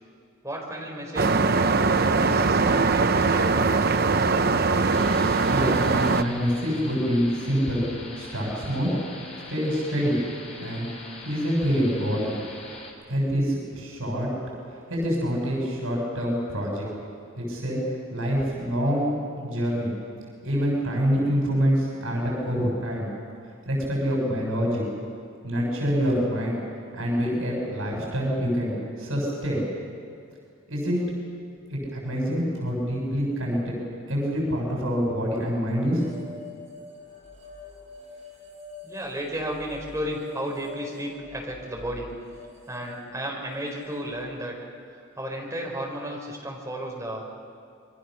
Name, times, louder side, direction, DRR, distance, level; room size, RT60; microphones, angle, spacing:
voice 1, 0.4-3.9 38.8-42.1 42.7-44.6 45.2-47.3, equal, 15° right, -2 dB, 4.6 m, -34 dB
sound 1, 1.2-6.2, right 4 dB, 45° right, 0.7 m, -21 dB
sound 2, 4.9-12.9, left 2 dB, 30° left, 3.7 m, -42 dB
voice 2, 5.4-7.9 8.1-8.9 9.5-10.2 10.6-10.9 11.2-12.3 13.1-14.3 14.9-16.9 17.4-17.8 18.1-19.9 20.4-23.1 23.7-24.8 25.4-26.6 26.9-29.6 30.7-31.0 31.7-33.8 34.1-36.0, equal, 85° right, -2 dB, 7.0 m, -26 dB
sound 3, 36.0-44.2, left 2 dB, 30° right, 7.6 m, -45 dB
27.5 x 23.0 x 6.5 m, 2.3 s
head